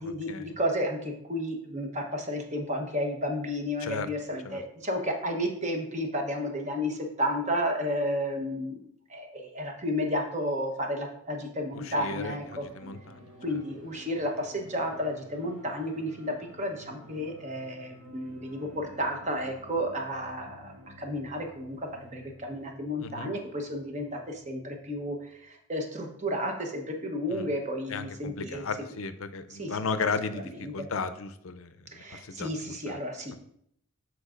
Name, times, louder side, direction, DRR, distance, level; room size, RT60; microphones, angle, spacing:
voice 1, 0.0-8.8 9.1-12.6 13.4-28.6 29.5-29.8 30.6-30.9 31.9-33.4, equal, 30° right, 3 dB, 1.0 m, -32 dB
voice 2, 11.7-13.5 23.0-23.3 27.3-27.5 27.9-33.0, left 4 dB, 70° left, 10 dB, 0.6 m, -35 dB
sound 1, 11.8-25.4, left 1 dB, 75° right, 2.3 m, -52 dB
13.0 x 4.7 x 2.5 m, 0.71 s
head